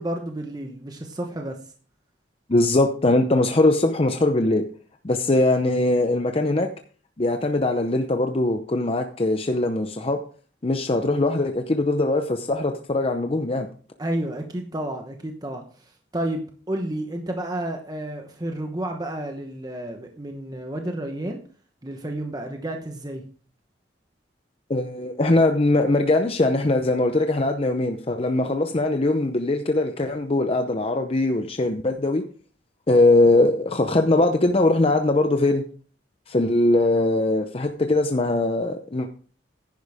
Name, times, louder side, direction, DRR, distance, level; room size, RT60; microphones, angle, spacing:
voice 1, 0.0-1.6 14.0-21.4 21.8-23.2, right 1 dB, 20° right, 3 dB, 1.0 m, -31 dB
voice 2, 2.5-4.6 5.0-6.7 7.2-10.2 10.6-13.7 24.7-32.2 32.9-35.6 36.3-39.1, left 2 dB, 30° left, 6 dB, 0.7 m, -21 dB
10.5 x 10.5 x 3.5 m, 0.43 s
head